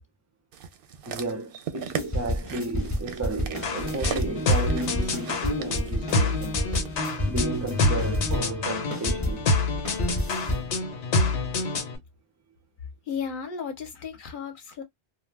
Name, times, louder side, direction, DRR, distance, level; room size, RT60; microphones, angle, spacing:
sound 1, 0.5-6.9 7.6-7.7, right 8 dB, 60° right, 0.7 m, -39 dB
voice 1, 1.1-6.6 7.3-9.5, right 2 dB, 25° right, 0.3 m, -32 dB
sound 2, 2.0-8.6 8.9-10.8, equal, 20° left, 0.7 m, -30 dB
sound 3, 3.6-12.0, left 3 dB, 90° left, 1.1 m, -27 dB
voice 2, 13.1-14.8, left 6 dB, 55° left, 0.8 m, -34 dB
2.4 x 2.2 x 3.2 m
omnidirectional pair, 1.1 m